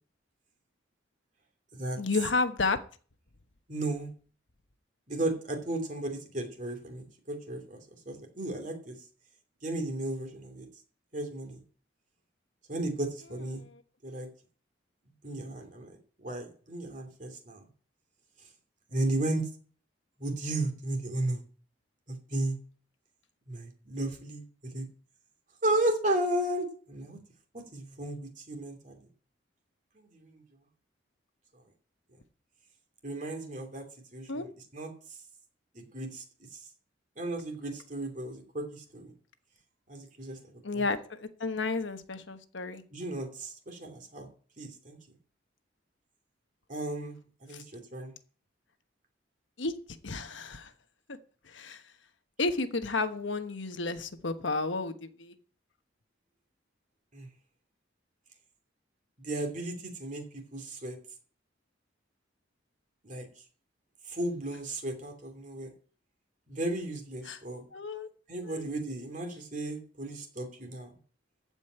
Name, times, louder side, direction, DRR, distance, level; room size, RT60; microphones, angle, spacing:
voice 1, 2.0-2.8 13.5-13.8 34.3-34.5 40.6-42.8 47.5-47.6 49.6-50.7 51.1-51.2 51.4-51.8 52.4-55.4 67.2-67.4 67.7-68.1 68.4-68.7, left 3 dB, 75° left, 9 dB, 1.2 m, -32 dB
voice 2, 3.7-4.1 5.1-8.9 9.6-10.6 11.1-11.6 12.7-13.6 14.0-14.3 15.2-15.9 16.2-17.6 18.9-19.5 20.2-21.4 22.1-22.6 23.5-24.8 25.6-27.2 27.5-29.0 29.9-30.4 33.0-33.8 34.1-34.9 35.7-36.2 36.5-36.6 37.2-39.1 39.9-40.4 40.7-40.8 42.9-44.3 44.6-45.0 46.7-47.2 47.4-48.1 57.1-57.3 59.2-61.0 63.0-63.3 64.1-65.7 66.5-67.7 68.3-70.9, right 1 dB, 40° right, 4 dB, 2.8 m, -34 dB
14.5 x 5.3 x 8.7 m, 0.42 s
head